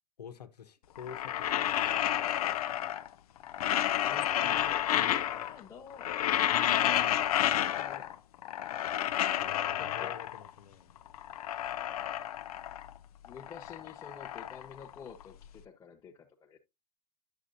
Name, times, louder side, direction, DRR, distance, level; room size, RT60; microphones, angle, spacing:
voice 1, 0.2-2.1 9.3-11.0, left 7 dB, 85° left, 1.3 m, -48 dB
sound 1, 1.0-3.1 3.4-5.6 5.9-8.1 8.4-10.5 11.0-13.0 13.2-15.4, left 11 dB, 65° left, 0.8 m, -30 dB
voice 2, 3.5-6.4 7.5-8.1 9.7-10.2 13.2-16.6, left 7 dB, 20° left, 1.4 m, -49 dB
10.5 x 7.0 x 2.7 m
hypercardioid pair, 110°, 20 cm